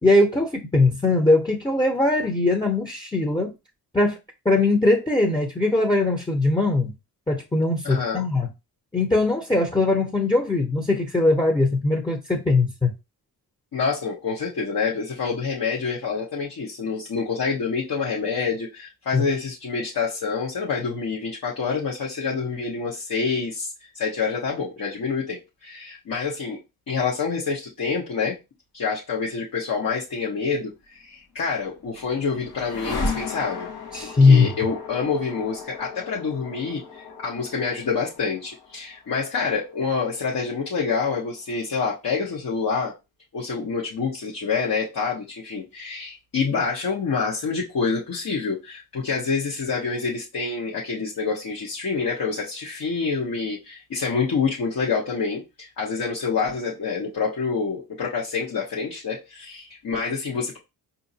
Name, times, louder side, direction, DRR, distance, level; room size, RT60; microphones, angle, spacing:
voice 1, 0.0-3.5 3.9-4.2 4.4-6.9 7.3-8.5 8.9-12.9 19.1-19.2 33.9-34.5, left 2 dB, 10° left, 0.8 m, -20 dB
voice 2, 7.8-8.2 13.7-26.6 26.9-28.3 28.7-33.7 34.0-42.9 43.3-60.6, left 5 dB, 60° left, 1.1 m, -27 dB
sound 1, 31.4-41.4, left 3 dB, 85° left, 1.1 m, -36 dB
4.9 x 2.7 x 2.7 m
cardioid pair, 85°, 38 cm